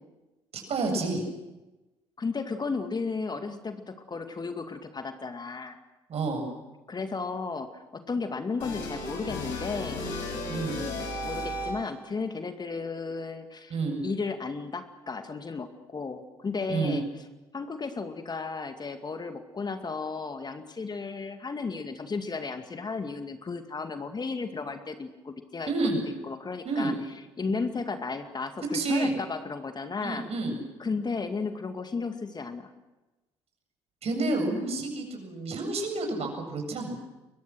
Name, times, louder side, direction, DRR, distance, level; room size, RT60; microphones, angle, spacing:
voice 1, 0.5-1.2 6.1-6.5 10.5-10.8 13.7-14.0 16.7-17.0 25.7-26.1 26.6-27.0 28.7-29.1 30.0-30.6 34.0-37.0, right 3 dB, 45° right, 4 dB, 7.7 m, -29 dB
voice 2, 2.2-5.8 6.9-10.1 11.2-13.7 14.0-17.1 17.5-25.7 26.2-26.9 27.4-30.3 30.8-32.7, left 4 dB, 30° left, 7 dB, 2.2 m, -34 dB
sound 1, 8.6-12.0, left 2 dB, 70° left, 7.8 m, -34 dB
29.0 x 23.5 x 6.4 m, 1.1 s
figure-of-eight pair, 50°, 14 cm